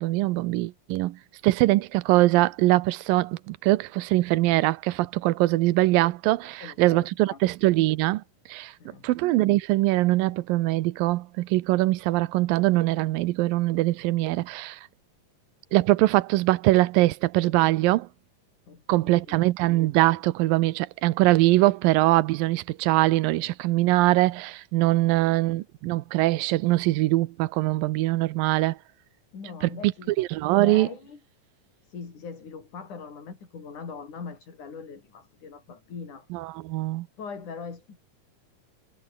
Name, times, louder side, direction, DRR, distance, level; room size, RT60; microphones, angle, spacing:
voice 1, 0.0-8.2 8.5-8.7 9.0-14.8 15.7-18.1 18.9-28.8 29.8-29.9 30.2-30.9 36.3-37.1, right 18 dB, 90° right, 2.5 m, -22 dB
voice 2, 6.4-7.4 8.8-9.1 18.7-19.5 24.9-25.2 29.3-30.1 30.6-31.2 31.8-36.3 36.7-36.8 37.2-38.0, left 5 dB, 60° left, 6.1 m, -41 dB
omnidirectional pair, 4.0 m